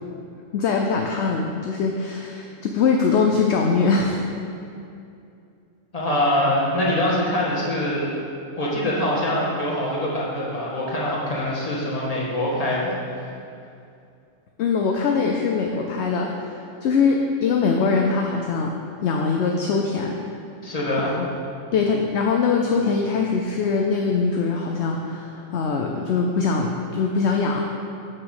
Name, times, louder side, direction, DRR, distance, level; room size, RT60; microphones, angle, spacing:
voice 1, 0.5-4.2 14.6-18.7 19.0-20.2 21.1-21.3 21.7-27.6, left 4 dB, 65° left, 2 dB, 0.8 m, -22 dB
voice 2, 5.9-8.1 8.6-12.9 20.6-21.1, left 1 dB, 30° left, -6 dB, 1.7 m, -24 dB
6.4 x 5.8 x 6.4 m, 2.5 s
omnidirectional pair, 1.4 m